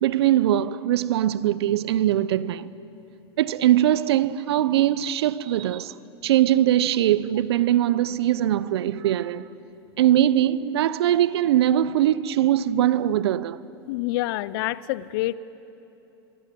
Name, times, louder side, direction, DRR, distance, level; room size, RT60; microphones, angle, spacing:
voice 1, 0.0-2.7 3.4-5.9 6.2-9.5 10.0-13.6, right 12 dB, 75° right, 0.8 m, -21 dB
voice 2, 13.9-15.3, left 17 dB, 65° left, 0.8 m, -27 dB
26.5 x 23.5 x 7.8 m
hypercardioid pair, 100°, 13 cm